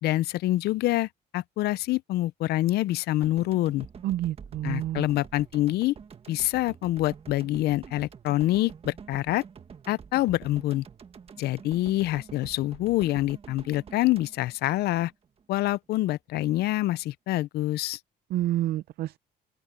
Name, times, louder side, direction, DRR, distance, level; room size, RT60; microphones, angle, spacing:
voice 1, 0.0-3.9 4.6-5.9 6.3-9.4 9.9-10.8 11.4-15.1 15.5-18.0, left 16 dB, 70° left, 0.5 m, -26 dB
sound 1, 3.2-15.4, right 6 dB, 35° right, 1.5 m, -47 dB
voice 2, 4.0-5.0 18.3-19.2, right 14 dB, 70° right, 0.5 m, -28 dB
open air
cardioid pair, 110°, 17 cm